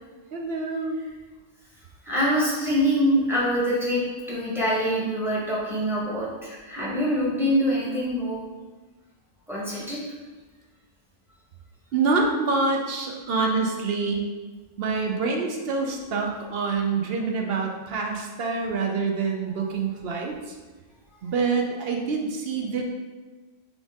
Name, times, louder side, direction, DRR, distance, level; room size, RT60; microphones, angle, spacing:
voice 1, 0.3-1.0 11.9-14.3 14.8-20.5 21.2-22.8, right 4 dB, 60° right, 2 dB, 0.7 m, -26 dB
voice 2, 2.0-4.0 4.3-8.4 9.5-10.0, equal, ahead, -7 dB, 1.1 m, -24 dB
4.1 x 3.5 x 3.5 m, 1.3 s
omnidirectional pair, 1.4 m